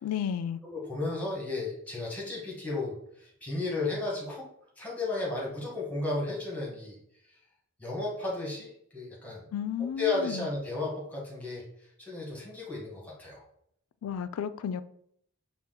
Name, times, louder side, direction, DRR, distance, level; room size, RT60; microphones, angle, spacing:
voice 1, 0.0-0.6 9.5-10.5 14.0-14.8, left 8 dB, 80° left, 0.3 m, -32 dB
voice 2, 0.6-4.5 4.8-7.0 7.8-9.4 9.8-11.6 12.0-13.4, left 3 dB, 5° left, 1.2 m, -34 dB
5.7 x 2.4 x 3.7 m
head